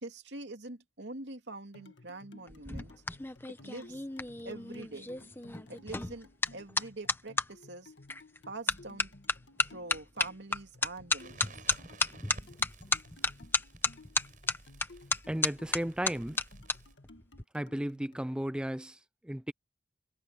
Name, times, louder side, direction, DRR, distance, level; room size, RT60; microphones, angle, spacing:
voice 1, 0.0-2.9 3.5-4.0 4.4-5.1 5.7-7.9 8.5-9.1 9.6-11.5, right 2 dB, 70° right, 2.6 m, -44 dB
sound 1, 1.7-18.3, left 2 dB, 70° left, 1.8 m, -57 dB
sound 2, 2.5-7.5 8.1-8.4 8.7-16.8 17.0-17.4, left 3 dB, 10° left, 1.0 m, -33 dB
Crackle, 11.2-17.0, right 2 dB, 45° right, 8.0 m, -54 dB
voice 2, 15.3-16.4 17.5-19.5, right 1 dB, 5° right, 0.3 m, -35 dB
head